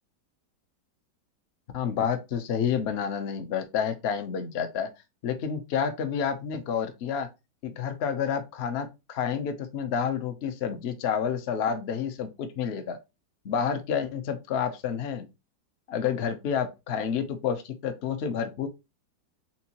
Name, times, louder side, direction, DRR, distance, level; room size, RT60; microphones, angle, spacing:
voice 1, 1.7-4.9 5.2-7.3 7.6-13.0 13.4-15.3 15.9-18.7, left 7 dB, 80° left, 0.5 m, -29 dB
4.4 x 3.5 x 2.8 m
omnidirectional pair, 2.0 m